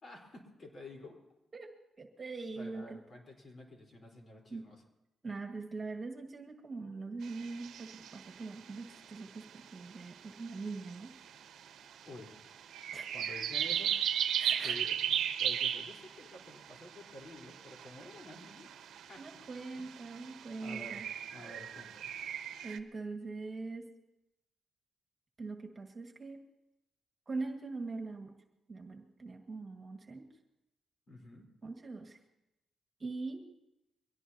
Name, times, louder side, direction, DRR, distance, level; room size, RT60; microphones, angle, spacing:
voice 1, 0.0-1.2 2.5-4.8 12.1-12.3 13.1-13.9 14.6-15.0 15.4-18.7 19.1-19.4 19.7-19.8 20.6-21.0 21.3-22.1 31.1-31.5, left 1 dB, 45° left, 1 dB, 4.2 m, -50 dB
voice 2, 1.5-3.0 4.5-4.7 5.2-11.2 12.9-13.2 14.4-14.9 19.2-21.1 22.6-23.8 25.4-26.4 27.3-28.3 28.7-30.3 31.6-32.2 33.0-33.4, right 3 dB, 35° right, 4 dB, 1.9 m, -42 dB
sound 1, 7.2-22.8, right 9 dB, 80° right, 0.9 m, -37 dB
24.0 x 17.0 x 2.9 m, 0.92 s
cardioid pair, 95°, 0 cm